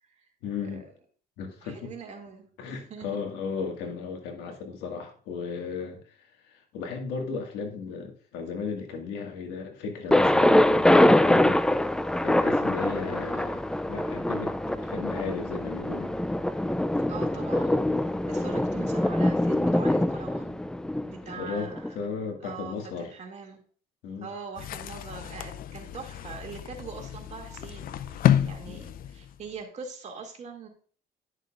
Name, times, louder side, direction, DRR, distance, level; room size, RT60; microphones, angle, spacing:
voice 1, 0.4-0.9 1.4-1.9 2.6-16.1 21.2-23.1 24.0-24.3 28.7-28.8, left 5 dB, 90° left, 4 dB, 1.9 m, -35 dB
voice 2, 1.6-2.5 2.9-3.2 17.1-20.7 21.0-22.0 22.4-23.6 24.2-30.7, right 5 dB, 45° right, 1 dB, 2.4 m, -42 dB
Thunder, 10.1-21.9, left 1 dB, 5° left, 0.3 m, -24 dB
sound 1, 24.6-29.5, left 10 dB, 60° left, 0.6 m, -30 dB
11.0 x 6.6 x 2.5 m, 0.43 s
cardioid pair, 110°, 17 cm